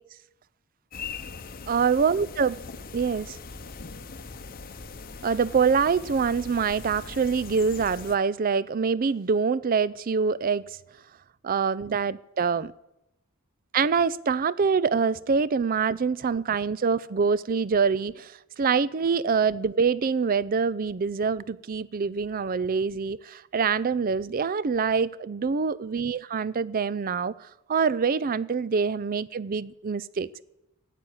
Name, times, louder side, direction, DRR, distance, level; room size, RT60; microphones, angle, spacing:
sound 1, 0.9-8.2, left 4 dB, 40° left, 0.8 m, -41 dB
voice 1, 1.7-2.6 2.9-3.4 5.2-10.8 11.4-12.7 13.7-27.3 27.7-30.4, right 5 dB, 40° right, 0.4 m, -25 dB
12.5 x 8.4 x 9.6 m
head